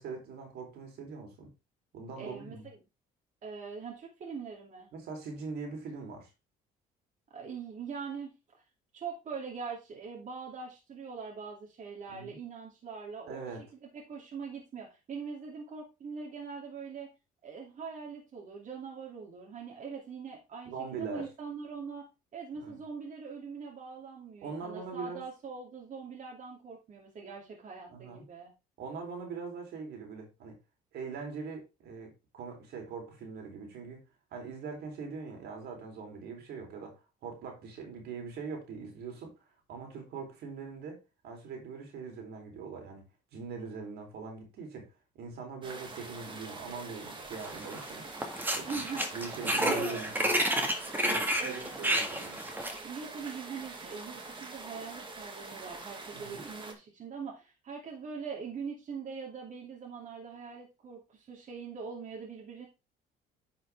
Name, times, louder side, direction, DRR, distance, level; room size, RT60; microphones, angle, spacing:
voice 1, 0.0-1.5 1.9-2.7 4.9-6.3 12.1-12.4 13.2-13.7 20.7-21.3 22.5-22.8 24.4-25.2 27.9-28.2 28.8-30.6 30.9-34.0 34.3-39.3 39.7-43.1 43.3-44.9 45.2-48.8 49.1-50.4 51.0-52.4 56.1-56.4, right 5 dB, 75° right, 2 dB, 3.7 m, -42 dB
voice 2, 2.2-2.8 3.4-4.9 7.3-8.6 8.9-13.5 13.9-17.1 17.4-22.1 22.3-28.5 48.6-49.2 49.6-50.2 51.4-51.9 52.8-62.7, right 5 dB, 45° right, -2 dB, 2.7 m, -42 dB
sound 1, 45.6-56.7, right 3 dB, 30° right, 2.1 m, -45 dB
sound 2, 47.4-47.9 48.2-52.8, right 1 dB, 10° right, 1.8 m, -30 dB
10.0 x 5.6 x 3.5 m, 0.27 s
cardioid pair, 110°, 17 cm